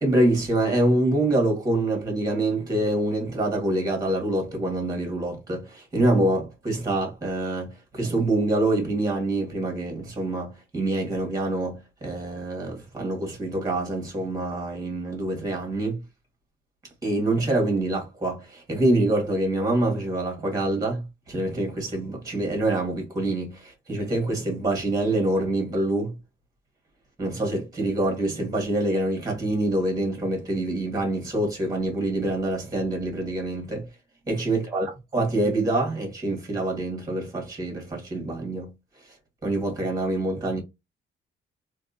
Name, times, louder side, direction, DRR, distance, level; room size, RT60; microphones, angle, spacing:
voice 1, 0.0-16.0 17.0-26.2 27.2-33.9 34.3-38.7 39.4-40.6, right 1 dB, 20° right, 1.9 m, -26 dB
3.4 x 3.0 x 2.7 m
cardioid pair, 90°, 20 cm